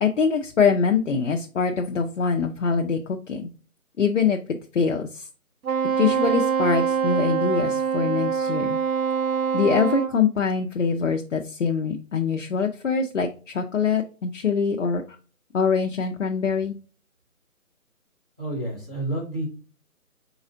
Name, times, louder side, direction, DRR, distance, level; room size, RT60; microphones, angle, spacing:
voice 1, 0.0-3.5 4.0-4.4 4.7-5.3 6.0-8.8 9.5-15.0 15.5-16.7, left 5 dB, 55° left, 3 dB, 0.6 m, -24 dB
Wind instrument woodwind instrument, 5.6-10.1, right 6 dB, 75° right, 0.7 m, -24 dB
voice 2, 18.4-19.5, right 1 dB, 5° right, -12 dB, 0.9 m, -29 dB
4.3 x 3.9 x 2.6 m, 0.37 s
figure-of-eight pair, 165°, 44 cm